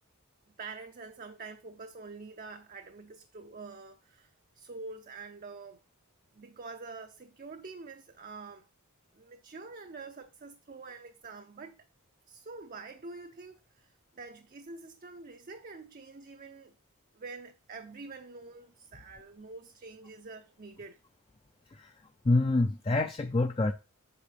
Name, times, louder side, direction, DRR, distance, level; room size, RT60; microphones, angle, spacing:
voice 1, 0.6-5.8 6.3-8.7 9.1-11.8 12.3-16.7 17.1-21.0, right 3 dB, 40° right, 0.5 m, -46 dB
voice 2, 22.2-23.7, left 2 dB, 25° left, 0.4 m, -26 dB
8.4 x 6.2 x 3.3 m
head